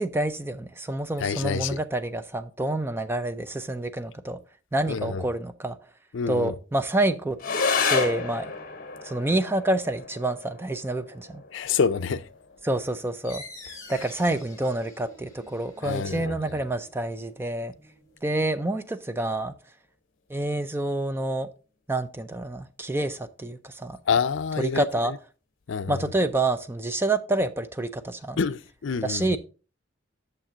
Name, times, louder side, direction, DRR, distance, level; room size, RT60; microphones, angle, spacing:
voice 1, 0.0-4.4 4.7-5.8 6.3-7.4 7.9-8.5 9.0-11.4 12.6-13.4 13.9-17.7 18.2-19.5 20.3-21.5 21.9-24.0 24.6-25.1 25.9-28.4 29.0-29.4, right 2 dB, 10° right, 0.4 m, -28 dB
voice 2, 1.2-1.8 4.9-5.2 6.1-6.5 11.5-12.3 15.8-16.5 24.1-25.2 25.7-26.0 28.4-29.4, left 5 dB, 70° left, 0.4 m, -27 dB
sound 1, 7.4-16.4, left 4 dB, 45° left, 1.1 m, -32 dB
sound 2, 13.2-18.5, left 3 dB, 15° left, 2.0 m, -48 dB
8.9 x 6.7 x 2.8 m
head